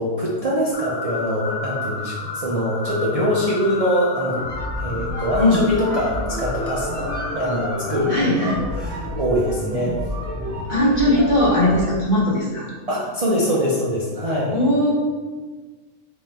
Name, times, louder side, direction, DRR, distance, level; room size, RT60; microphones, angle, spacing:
voice 1, 0.0-4.4 4.8-10.0 12.9-14.6, equal, 45° right, -5 dB, 0.4 m, -23 dB
sound 1, 0.7-8.0, left 4 dB, 80° left, 1.1 m, -32 dB
sound 2, 4.2-12.0, equal, 30° right, 1.0 m, -29 dB
voice 2, 8.1-8.6 10.7-12.7 14.5-14.9, left 1 dB, 35° left, -6 dB, 1.2 m, -19 dB
3.8 x 3.0 x 4.2 m, 1.4 s
omnidirectional pair, 1.5 m